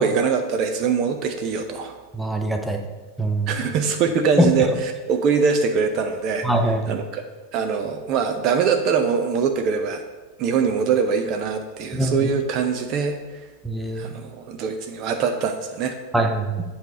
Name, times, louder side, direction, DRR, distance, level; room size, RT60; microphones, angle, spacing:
voice 1, 0.0-2.0 3.5-7.2 7.5-10.0 10.4-13.4 13.9-15.9, right 6 dB, 40° right, 6 dB, 0.6 m, -23 dB
voice 2, 2.1-2.8 3.2-3.5 4.4-4.5 6.4-6.9 11.9-12.3 13.6-14.1 16.1-16.6, right 1 dB, 5° right, 4 dB, 0.8 m, -22 dB
8.1 x 4.3 x 4.9 m, 1.3 s
figure-of-eight pair, 90°, 0 cm